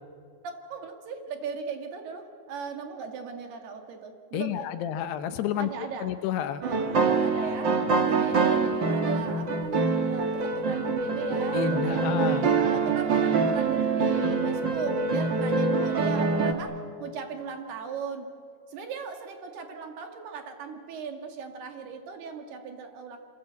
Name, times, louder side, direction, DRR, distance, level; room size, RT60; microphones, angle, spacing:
voice 1, 0.4-4.7 5.5-6.1 6.6-12.3 12.5-18.3 18.7-23.2, right 5 dB, 65° right, 5 dB, 3.9 m, -38 dB
voice 2, 4.3-5.7 6.0-6.6 11.5-12.5, left 10 dB, 75° left, 10 dB, 2.8 m, -30 dB
sound 1, 6.6-16.5, right 4 dB, 85° right, 1.0 m, -25 dB
28.0 x 25.5 x 8.2 m, 2.1 s
omnidirectional pair, 5.1 m